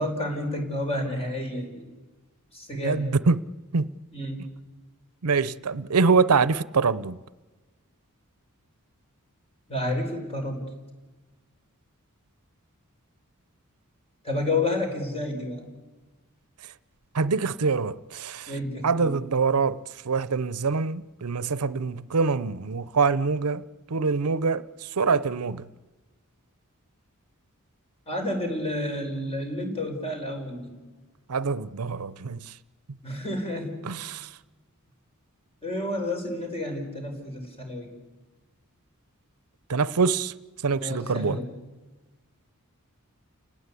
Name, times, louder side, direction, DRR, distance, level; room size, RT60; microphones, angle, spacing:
voice 1, 0.0-1.9 2.5-3.1 4.1-4.4 9.7-10.6 14.2-15.7 18.5-19.2 28.1-30.7 33.0-33.9 35.6-37.9 40.8-41.5, left 1 dB, 25° left, 4.8 m, -30 dB
voice 2, 2.7-3.4 3.7-3.9 5.2-7.2 17.1-18.5 18.8-19.8 20.0-25.6 31.3-32.5 33.8-34.3 39.7-40.3 40.6-41.4, right 4 dB, 85° right, 0.7 m, -25 dB
30.0 x 19.0 x 8.3 m
head